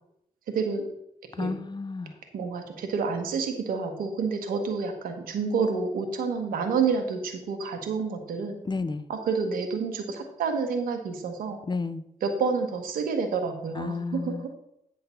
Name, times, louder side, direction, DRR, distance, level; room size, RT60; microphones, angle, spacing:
voice 1, 0.5-0.9 1.4-1.6 2.3-8.6 9.1-11.6 12.2-14.5, right 5 dB, 90° right, 6 dB, 1.2 m, -29 dB
voice 2, 1.4-2.1 8.6-9.1 11.7-12.0 13.8-14.5, left 3 dB, 30° left, 14 dB, 0.6 m, -31 dB
9.2 x 3.8 x 6.9 m, 0.78 s
supercardioid pair, 45°, 14 cm